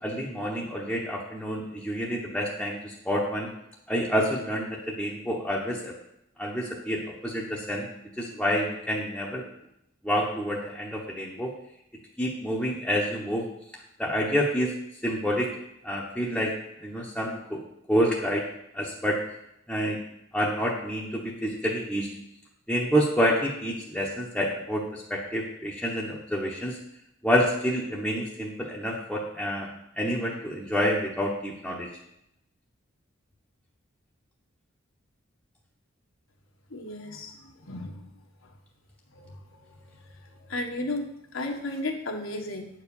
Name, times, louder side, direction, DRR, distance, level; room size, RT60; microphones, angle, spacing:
voice 1, 0.0-3.5 3.9-5.9 6.4-7.9 8.2-9.4 10.0-11.5 12.2-13.4 14.0-14.7 15.0-15.5 15.8-16.5 16.8-17.6 17.9-18.5 18.7-19.2 19.7-20.0 20.3-22.1 22.7-26.8 27.2-29.7 30.0-31.9, equal, 5° left, -4 dB, 1.0 m, -28 dB
voice 2, 36.7-38.1 39.1-39.4 39.7-39.8 40.2-42.7, left 2 dB, 75° left, 1 dB, 1.5 m, -34 dB
9.1 x 4.7 x 7.1 m, 0.80 s
head